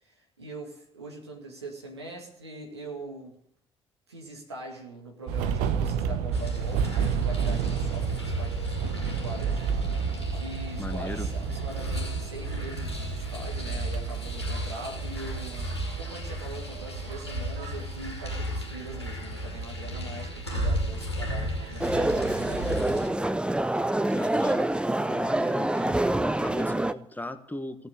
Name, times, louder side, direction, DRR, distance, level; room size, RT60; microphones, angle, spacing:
voice 1, 0.0-3.4 4.1-23.2, right 2 dB, 85° right, 0 dB, 2.2 m, -42 dB
sound 1, 5.3-22.7, right 6 dB, 65° right, 0.9 m, -32 dB
sound 2, 6.3-23.1, equal, 90° left, 1.8 m, -35 dB
voice 2, 10.8-11.3 24.1-27.9, left 1 dB, 10° left, 9 dB, 1.5 m, -37 dB
sound 3, 21.8-26.9, right 1 dB, 5° right, 0.7 m, -26 dB
17.0 x 7.9 x 9.7 m, 0.75 s
figure-of-eight pair, 45°, 14 cm